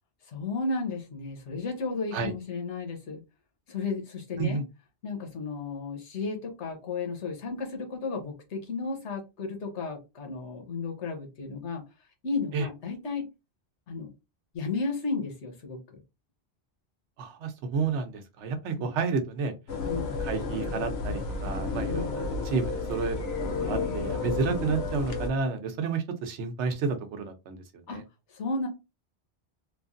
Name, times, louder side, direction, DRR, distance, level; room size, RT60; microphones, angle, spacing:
voice 1, 0.3-3.2 3.7-4.6 5.0-11.8 12.2-13.3 13.9-14.1 14.5-16.0 18.8-18.9 19.8-20.2 21.9-22.1 27.9-28.0 28.3-28.7, left 4 dB, 85° left, 1.2 m, -33 dB
voice 2, 17.2-19.5 20.0-28.0, right 5 dB, 85° right, 0.9 m, -31 dB
sound 1, 19.7-25.3, left 3 dB, 70° left, 0.9 m, -31 dB
3.0 x 2.5 x 2.4 m
omnidirectional pair, 1.1 m